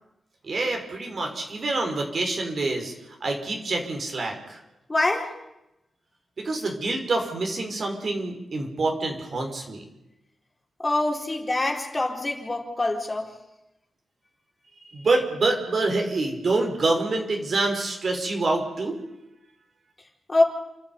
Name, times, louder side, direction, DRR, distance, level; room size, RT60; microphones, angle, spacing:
voice 1, 0.4-2.9 3.2-4.6 6.4-9.8 14.9-19.0, right 2 dB, 60° right, 2 dB, 5.2 m, -26 dB
voice 2, 4.9-5.3 10.8-13.3 20.3-20.4, left 2 dB, 30° left, 1 dB, 4.4 m, -24 dB
28.5 x 11.5 x 9.5 m, 0.91 s
cardioid pair, 50°, 0 cm